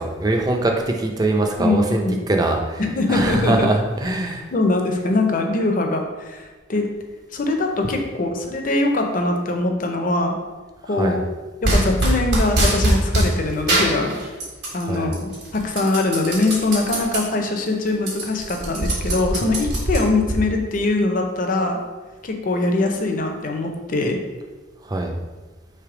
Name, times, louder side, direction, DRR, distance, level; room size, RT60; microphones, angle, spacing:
voice 1, 0.0-2.8 3.1-4.5 11.0-11.2 14.9-15.1 24.9-25.1, right 2 dB, 20° right, 2 dB, 0.4 m, -22 dB
voice 2, 1.6-2.2 2.8-3.7 4.5-6.4 6.7-6.9 7.3-10.3 10.9-11.2 11.6-14.2 14.7-21.8 22.2-24.2, left 2 dB, 45° left, 3 dB, 0.5 m, -22 dB
sound 1, 11.6-13.3 13.7-14.8 15.1-17.2 17.6-17.7 17.9-20.4, right 1 dB, 60° right, 1.4 m, -21 dB
3.4 x 3.1 x 4.8 m, 1.3 s
head